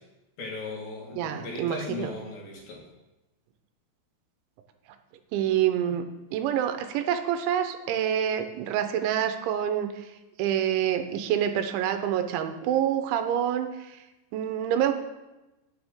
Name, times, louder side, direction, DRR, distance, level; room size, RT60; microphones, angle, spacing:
voice 1, 0.4-2.8, left 3 dB, 60° left, -2 dB, 3.3 m, -37 dB
voice 2, 1.2-2.1 5.3-6.0 6.3-10.0 10.4-14.0 14.3-14.9, right 10 dB, 85° right, 8 dB, 3.1 m, -27 dB
16.0 x 7.3 x 3.6 m, 1.0 s
omnidirectional pair, 5.3 m